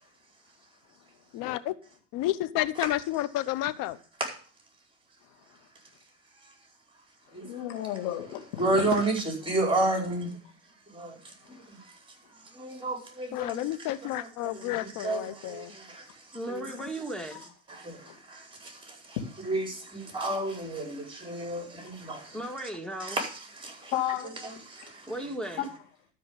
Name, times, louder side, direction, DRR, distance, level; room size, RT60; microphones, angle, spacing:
voice 1, 1.3-1.7 2.1-4.0 13.3-15.7, left 15 dB, 65° left, 0.9 m, -30 dB
voice 2, 7.4-8.9 18.1-18.2 19.2-19.3 23.9-24.3 25.6-25.7, left 11 dB, 80° left, 2.2 m, -32 dB
voice 3, 8.6-10.3 10.9-11.1 12.5-13.7 14.2-16.0 16.5-16.7 17.7-18.0 18.3-19.2 19.5-22.4 23.0-23.9 24.4-24.9, right 2 dB, 15° right, 4.8 m, -31 dB
voice 4, 16.3-17.5 22.3-23.2 25.1-25.7, right 1 dB, ahead, 2.2 m, -36 dB
12.5 x 5.3 x 7.0 m
supercardioid pair, 95°, 35 cm